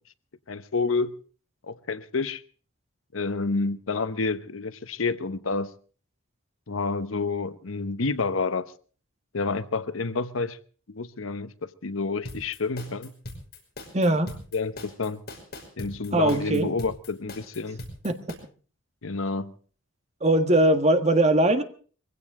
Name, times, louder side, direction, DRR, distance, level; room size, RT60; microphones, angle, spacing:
voice 1, 0.5-1.1 1.6-2.4 3.1-5.7 6.7-8.7 9.3-10.6 10.9-13.1 14.5-15.2 15.8-17.8 19.0-19.5, left 4 dB, 90° left, 0.9 m, -29 dB
sound 1, 12.2-18.3, left 1 dB, 55° left, 5.5 m, -40 dB
voice 2, 13.9-14.3 16.1-16.7 18.0-18.2 20.2-21.6, right 1 dB, 35° right, 1.6 m, -21 dB
22.5 x 16.5 x 3.7 m
head